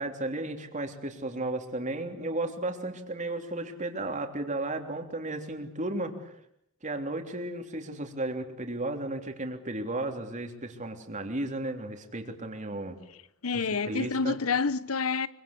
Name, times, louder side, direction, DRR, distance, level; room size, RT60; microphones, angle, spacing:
voice 1, 0.0-6.3 6.8-13.0 13.5-14.4, right 2 dB, 35° right, 3.3 m, -34 dB
voice 2, 13.4-15.3, left 5 dB, 85° left, 1.1 m, -28 dB
25.0 x 24.0 x 8.5 m
head